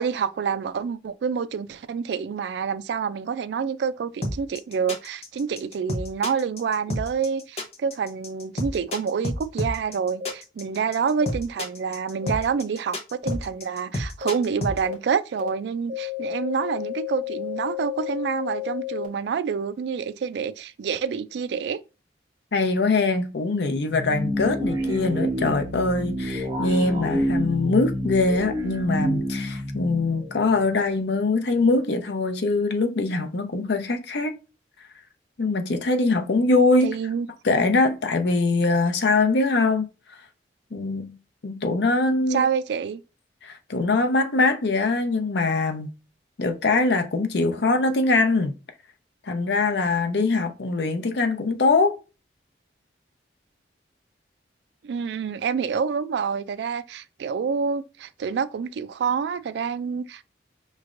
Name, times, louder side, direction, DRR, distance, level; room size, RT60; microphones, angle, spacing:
voice 1, 0.0-21.8 36.8-37.3 42.3-43.0 54.8-60.2, right 6 dB, 75° right, 0.3 m, -27 dB
sound 1, 4.2-14.8, left 1 dB, 35° left, 0.7 m, -30 dB
sound 2, 10.2-10.3 11.2-11.3 12.2-12.3 13.2-13.3 14.2-14.3 14.8-14.9 15.4-15.5 15.9-19.1, left 15 dB, 45° right, 1.0 m, -32 dB
voice 2, 22.5-34.3 35.4-36.9 37.4-39.8 40.7-41.1 41.4-42.5 43.4-45.9 46.4-48.5 49.3-52.0, left 3 dB, 75° left, 0.6 m, -22 dB
sound 3, 23.9-31.1, equal, 20° right, 0.8 m, -28 dB
5.0 x 3.1 x 2.5 m
head